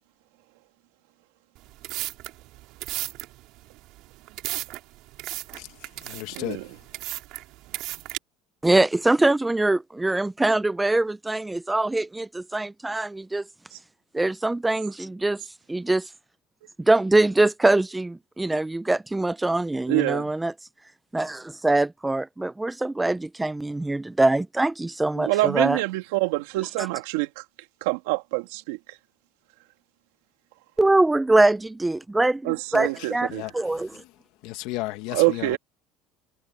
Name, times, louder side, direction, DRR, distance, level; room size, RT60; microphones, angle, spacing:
sound 1, 1.5-8.2, right 18 dB, 65° right, 3.8 m, -35 dB
voice 1, 5.5-6.7 33.0-34.1 34.4-35.6, left 19 dB, 75° left, 1.6 m, -35 dB
voice 2, 6.3-6.7 13.7-13.8 19.9-20.3 25.2-27.4 27.8-29.0 32.4-33.5 35.1-35.6, right 20 dB, 90° right, 2.5 m, -26 dB
voice 3, 8.6-13.4 14.1-16.1 16.8-20.5 21.1-25.8 30.8-33.9, right 2 dB, 10° right, 0.4 m, -23 dB
cardioid pair, 125°, 0 cm